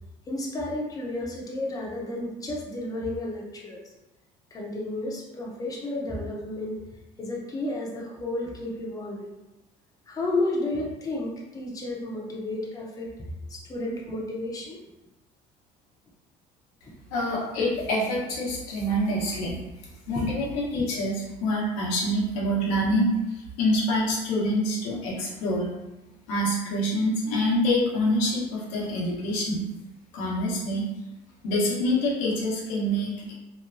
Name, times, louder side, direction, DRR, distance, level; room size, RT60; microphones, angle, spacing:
voice 1, 0.3-3.8 4.5-6.8 7.2-9.3 10.1-14.8 16.8-16.9 20.2-20.3, left 2 dB, 20° left, -3 dB, 0.6 m, -32 dB
voice 2, 17.1-19.6 20.1-25.7 26.3-29.7 30.1-30.9 31.4-33.3, equal, 90° left, -4 dB, 0.9 m, -26 dB
2.9 x 2.2 x 2.4 m, 1.0 s
supercardioid pair, 100°, 16 cm